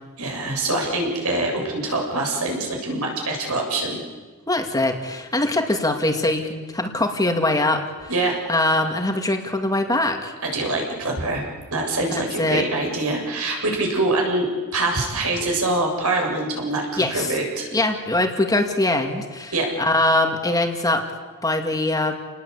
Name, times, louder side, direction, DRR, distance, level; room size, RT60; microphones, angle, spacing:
voice 1, 0.2-4.0 8.1-8.4 10.4-11.4 11.7-17.7 19.5-19.7, right 2 dB, 75° right, 1 dB, 7.6 m, -24 dB
voice 2, 4.5-7.8 8.5-10.3 12.1-12.7 17.0-17.4 17.7-21.1 21.4-22.2, left 2 dB, 15° left, 4 dB, 2.3 m, -22 dB
30.0 x 20.0 x 8.4 m, 1.4 s
head